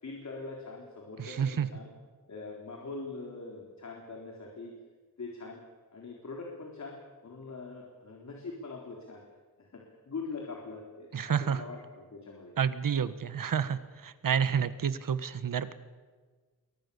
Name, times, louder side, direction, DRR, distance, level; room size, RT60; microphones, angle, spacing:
voice 1, 0.0-1.9 2.3-4.7 5.2-5.6 5.9-9.2 9.6-12.5, left 3 dB, 55° left, -1 dB, 4.0 m, -43 dB
voice 2, 1.2-1.7 11.1-11.6 12.6-15.7, right 7 dB, 85° right, 12 dB, 1.5 m, -29 dB
28.5 x 23.0 x 7.1 m, 1.4 s
wide cardioid pair, 175°, 32 cm